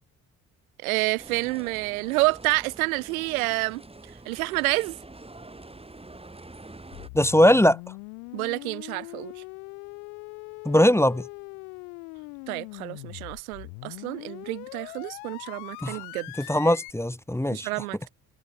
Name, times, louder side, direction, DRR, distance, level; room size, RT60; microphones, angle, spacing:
voice 1, 0.8-3.8 4.2-5.0 8.3-9.3 12.5-16.3 17.5-18.1, right 22 dB, 80° right, 1.4 m, -28 dB
sound 1, 1.2-7.1, right 2 dB, 15° right, 2.6 m, -46 dB
sound 2, 6.9-16.9, left 39 dB, 80° left, 1.7 m, -41 dB
voice 2, 7.1-7.8 10.6-11.2 15.8-16.0 16.4-17.7, left 1 dB, 5° left, 1.0 m, -20 dB
hypercardioid pair, 45°, 42 cm